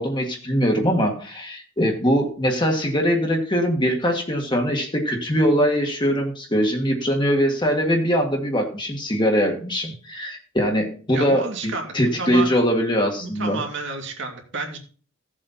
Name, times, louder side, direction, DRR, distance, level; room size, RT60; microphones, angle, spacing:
voice 1, 0.0-13.6, equal, 25° left, 2 dB, 1.7 m, -22 dB
voice 2, 11.1-12.5 13.2-14.8, right 3 dB, 60° right, 2 dB, 2.6 m, -31 dB
15.5 x 7.5 x 4.2 m, 0.42 s
head